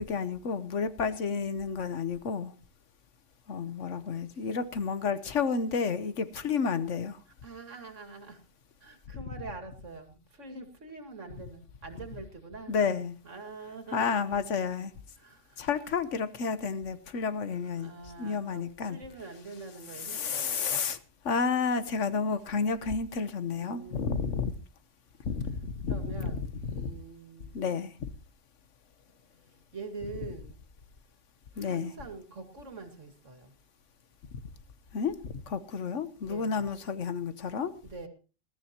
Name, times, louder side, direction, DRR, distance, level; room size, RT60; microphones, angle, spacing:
voice 1, 0.0-2.5 3.5-7.2 12.7-13.1 13.9-14.9 15.6-17.9 18.2-19.0 20.1-21.0 21.2-24.5 25.3-26.3 26.7-26.9 27.5-27.9 31.6-31.9 34.9-37.7, left 5 dB, 80° left, 12 dB, 1.4 m, -31 dB
voice 2, 7.3-8.4 8.8-12.8 13.2-14.4 15.2-15.7 17.7-20.9 23.5-24.6 25.9-27.6 29.7-30.6 31.5-33.5 36.2-36.7 37.8-38.1, right 3 dB, 80° right, 6 dB, 2.7 m, -45 dB
21.0 x 13.5 x 2.9 m, 0.34 s
omnidirectional pair, 1.2 m